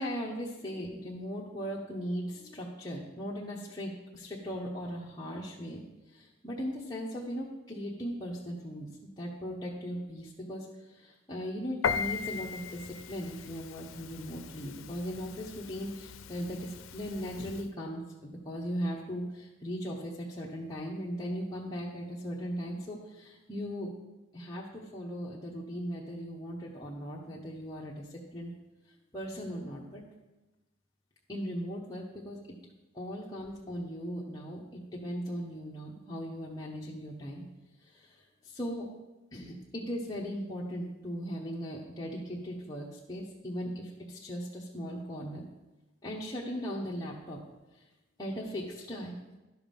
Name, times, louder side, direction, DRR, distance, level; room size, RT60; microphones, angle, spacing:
voice 1, 0.0-5.8 6.1-23.9 24.3-28.5 29.1-30.0 31.3-32.4 32.9-37.4 37.8-38.9 39.3-45.4 46.0-47.4 48.2-49.2, equal, 20° left, -5 dB, 0.9 m, -38 dB
Piano, 11.8-17.7, left 6 dB, 90° left, 0.4 m, -38 dB
11.0 x 5.9 x 5.3 m, 1.1 s
head